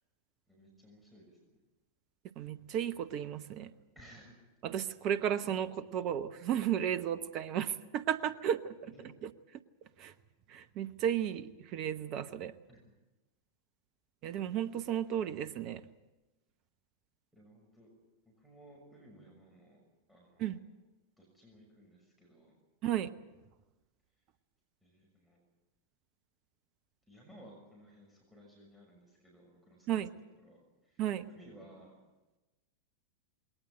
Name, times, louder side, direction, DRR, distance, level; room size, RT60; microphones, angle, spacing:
voice 1, 0.5-1.6 3.9-4.4 8.8-9.1 12.7-12.8 17.3-17.9 18.3-19.8 20.1-20.6 21.2-22.5 24.8-25.4 27.1-32.0, right 1 dB, 5° right, -2 dB, 6.3 m, -58 dB
voice 2, 2.4-3.7 4.6-8.8 9.2-9.3 10.0-10.1 10.5-12.6 14.2-15.8 20.4-20.6 22.8-23.1 29.9-30.1 31.0-31.3, right 10 dB, 40° right, 14 dB, 0.9 m, -34 dB
21.0 x 19.0 x 8.9 m, 1.1 s
figure-of-eight pair, 90°, 0 cm